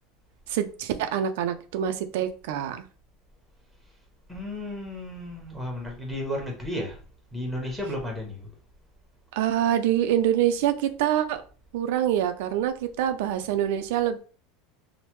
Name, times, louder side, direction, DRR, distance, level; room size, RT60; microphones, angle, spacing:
voice 1, 0.5-2.8 9.3-11.4 11.7-14.2, right 10 dB, 75° right, 0.3 m, -25 dB
voice 2, 4.3-7.0 7.3-8.5, left 1 dB, ahead, 1.0 m, -33 dB
3.2 x 2.0 x 3.0 m
supercardioid pair, 145°, 0 cm